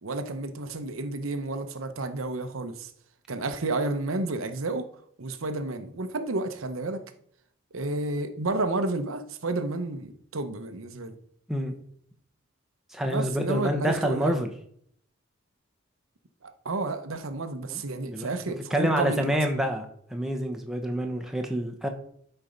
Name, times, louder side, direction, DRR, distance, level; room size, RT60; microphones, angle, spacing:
voice 1, 0.0-2.9 3.3-4.9 5.2-7.0 7.7-11.2 13.0-14.4 16.4-19.4, right 2 dB, 85° right, 8 dB, 0.9 m, -31 dB
voice 2, 12.9-14.5 17.7-17.8 18.1-18.3 18.7-19.8 20.1-21.9, equal, ahead, 3 dB, 1.0 m, -27 dB
12.0 x 4.5 x 5.2 m, 0.65 s
head